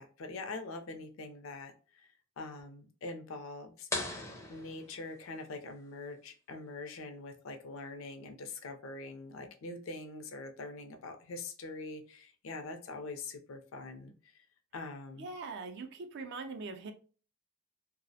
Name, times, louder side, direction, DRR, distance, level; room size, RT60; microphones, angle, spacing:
voice 1, 0.0-3.9 4.5-14.5 14.7-15.3, left 3 dB, 70° left, 0.5 m, -44 dB
sound 1, 3.9-5.6, left 2 dB, 15° left, 0.4 m, -40 dB
voice 2, 15.2-16.9, right 3 dB, 55° right, 0.4 m, -42 dB
2.3 x 2.0 x 2.6 m
head